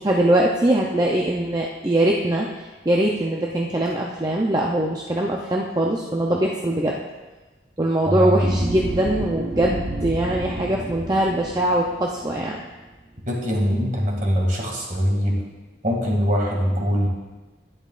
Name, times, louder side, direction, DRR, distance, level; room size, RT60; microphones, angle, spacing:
voice 1, 0.0-2.5 2.9-7.0 7.8-12.6, right 1 dB, 20° right, -2 dB, 0.6 m, -22 dB
voice 2, 8.1-8.5 13.3-15.4 15.8-17.1, equal, 45° right, -2 dB, 2.3 m, -22 dB
sound 1, 8.4-12.6, right 1 dB, 75° right, 1.1 m, -31 dB
12.0 x 10.5 x 2.5 m, 1.2 s
head